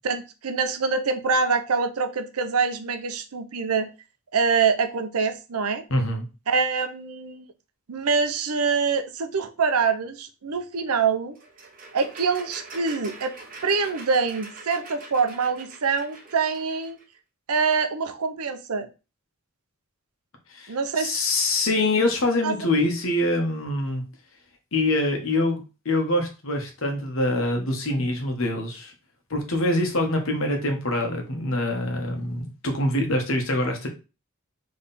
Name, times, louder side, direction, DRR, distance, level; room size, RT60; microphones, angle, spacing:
voice 1, 0.0-3.9 4.3-5.8 6.5-7.4 7.9-11.3 11.9-13.3 13.6-17.0 17.5-18.9 20.7-21.1 22.4-22.5, right 5 dB, 85° right, 9 dB, 0.7 m, -25 dB
voice 2, 5.9-6.3 20.5-24.0 24.7-28.9 29.3-33.9, left 1 dB, 65° left, 3 dB, 1.2 m, -25 dB
sound 1, 11.4-17.0, right 3 dB, 40° right, 0.9 m, -43 dB
3.6 x 3.3 x 4.1 m, 0.30 s
head